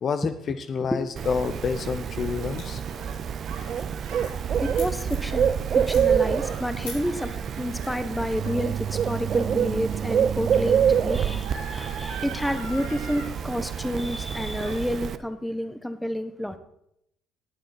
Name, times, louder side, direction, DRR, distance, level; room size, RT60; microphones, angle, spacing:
voice 1, 0.0-2.8, left 5 dB, 45° left, 10 dB, 0.7 m, -28 dB
Gasp, 0.8-13.3 13.6-14.2 14.5-15.2, right 4 dB, 80° right, 3.8 m, -44 dB
Bird, 1.2-15.2, right 8 dB, 50° right, 0.6 m, -27 dB
sound 1, 2.6-2.9 3.3-3.5 3.8-5.4 5.7-6.0 6.8-7.0 7.7-7.9, left 4 dB, 80° left, 5.0 m, -42 dB
voice 2, 4.6-16.6, equal, 5° left, 10 dB, 1.4 m, -30 dB
18.0 x 7.5 x 4.3 m, 0.77 s
hypercardioid pair, 60°, 0 cm